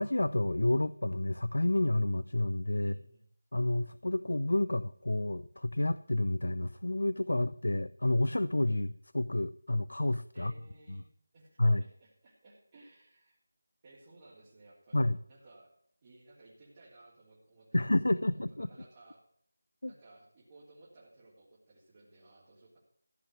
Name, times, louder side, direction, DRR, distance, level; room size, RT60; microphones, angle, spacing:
voice 1, 0.0-2.9 3.5-10.5 10.9-11.0 11.6-11.8 14.9-15.2 17.7-18.7 19.8-19.9, left 1 dB, 85° left, 16 dB, 0.5 m, -29 dB
voice 2, 2.8-3.3 10.3-11.1 11.3-13.4 13.8-15.7 16.0-19.2 19.9-22.8, right 2 dB, 25° right, -7 dB, 3.3 m, -58 dB
15.0 x 6.5 x 8.2 m, 0.64 s
figure-of-eight pair, 170°, 0 cm